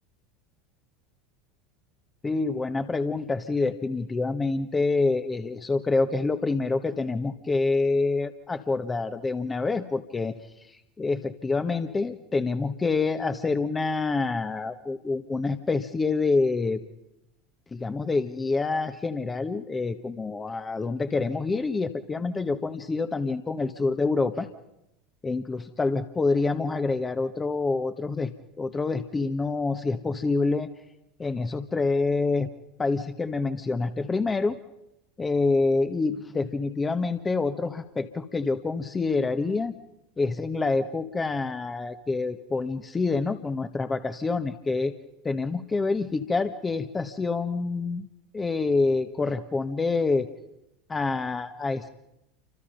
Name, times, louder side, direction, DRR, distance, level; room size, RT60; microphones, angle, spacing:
voice 1, 2.2-16.8 17.7-24.5 25.2-30.7 31.2-32.5 32.8-34.6 35.2-39.8 40.2-44.9 45.2-48.1 48.3-50.3 50.9-51.9, left 3 dB, 20° left, 8 dB, 1.4 m, -27 dB
28.5 x 25.5 x 5.4 m, 0.85 s
hypercardioid pair, 80°, 0 cm